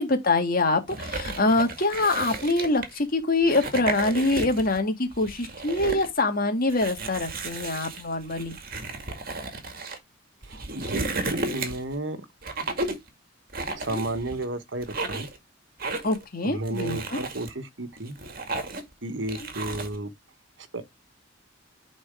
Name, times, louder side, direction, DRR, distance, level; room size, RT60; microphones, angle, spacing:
voice 1, 0.0-8.6 13.9-14.0 16.0-17.2, left 2 dB, 50° left, 2.1 m, -25 dB
sound 1, 0.9-3.0 3.4-4.8 5.1-6.1 6.7-10.0 10.4-11.9 12.4-13.1 13.5-14.4 14.8-15.4 15.8-16.2 16.7-17.5 18.0-18.9 19.3-20.0, right 2 dB, 50° right, 2.2 m, -33 dB
voice 2, 10.4-12.2 13.7-15.3 16.4-18.2 19.0-20.1 20.7-20.8, right 2 dB, 65° right, 1.4 m, -33 dB
10.5 x 4.3 x 3.7 m
head